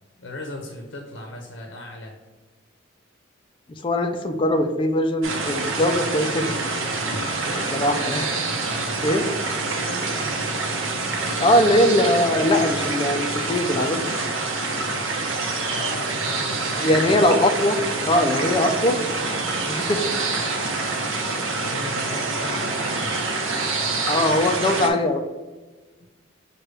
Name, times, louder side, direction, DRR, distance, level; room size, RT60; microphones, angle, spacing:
voice 1, 0.2-2.1 7.3-7.7 9.5-10.2 15.6-17.2 21.6-23.3 26.0-26.1, left 1 dB, 65° left, 1 dB, 0.6 m, -37 dB
voice 2, 3.8-6.6 7.4-8.4 9.0-9.3 11.4-14.0 16.8-17.8 18.1-19.0 19.7-20.1 24.0-25.2, left 1 dB, 25° left, 5 dB, 0.3 m, -21 dB
sound 1, 5.2-24.9, right 3 dB, 90° right, 0.7 m, -26 dB
6.2 x 2.2 x 3.2 m, 1.2 s
head